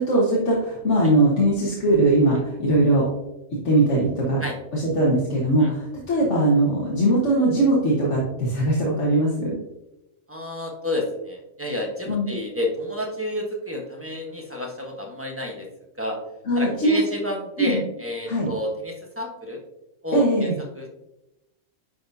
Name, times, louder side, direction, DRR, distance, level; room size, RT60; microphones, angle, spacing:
voice 1, 0.0-3.1 3.6-4.4 4.7-9.5 12.1-12.3 16.5-17.0 17.6-17.8 18.3-18.5 20.1-20.6, right 1 dB, 60° left, -4 dB, 1.6 m, -20 dB
voice 2, 10.3-15.7 16.0-16.2 16.5-19.6 20.0-20.9, left 1 dB, 10° right, 0 dB, 1.0 m, -30 dB
10.5 x 4.2 x 2.7 m, 0.92 s
omnidirectional pair, 1.5 m